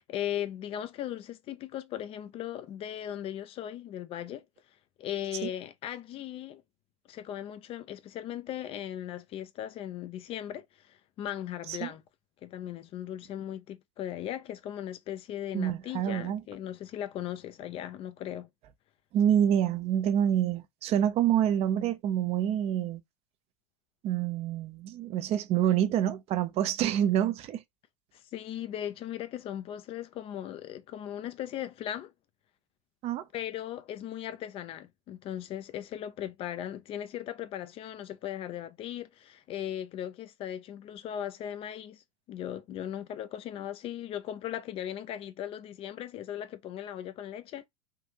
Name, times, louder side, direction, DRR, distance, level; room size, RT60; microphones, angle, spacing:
voice 1, 0.0-4.4 5.0-6.6 7.1-12.0 12.4-18.5 28.1-32.1 33.3-42.0 42.3-47.6, left 11 dB, 35° left, 0.5 m, -38 dB
voice 2, 15.5-16.4 19.1-23.0 24.0-27.6 33.0-33.2, right 10 dB, 35° right, 0.5 m, -27 dB
3.6 x 2.5 x 2.8 m
figure-of-eight pair, 80°, 17 cm